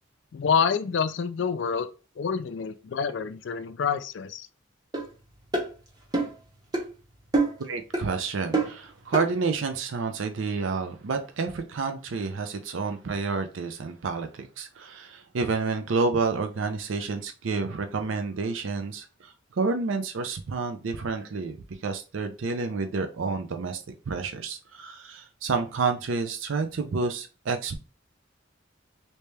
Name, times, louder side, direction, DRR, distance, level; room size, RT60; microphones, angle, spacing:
voice 1, 0.3-1.9 2.2-4.5, left 6 dB, 65° left, 0.4 m, -27 dB
sound 1, 4.9-5.1 5.5-5.7 6.1-6.4 6.7-6.9 7.3-7.6 7.9-8.1 8.5-8.8 9.1-9.3, right 3 dB, 20° right, 0.9 m, -25 dB
voice 2, 7.6-21.6 21.8-27.8, right 4 dB, 80° right, 0.5 m, -29 dB
3.3 x 2.8 x 3.2 m
head